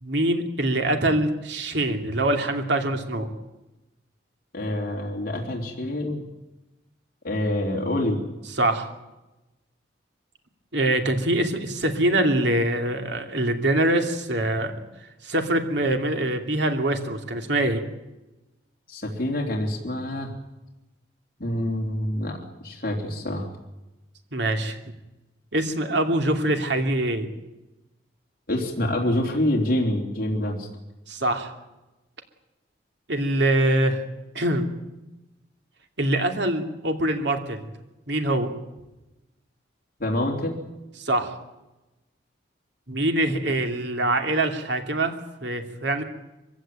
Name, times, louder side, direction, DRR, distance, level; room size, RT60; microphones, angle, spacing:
voice 1, 0.0-3.3 8.6-8.9 10.7-14.8 15.2-17.8 24.3-24.8 25.5-27.3 31.1-31.5 33.1-34.0 34.3-34.7 36.0-37.7 38.1-38.5 41.0-41.3 42.9-45.1 45.4-46.0, right 1 dB, 65° right, 5 dB, 2.8 m, -24 dB
voice 2, 4.5-6.2 7.2-8.2 18.9-20.3 21.4-22.4 22.6-23.5 28.5-30.7 40.0-40.6, left 1 dB, 50° left, -1 dB, 3.5 m, -26 dB
24.5 x 16.0 x 9.0 m, 1.0 s
head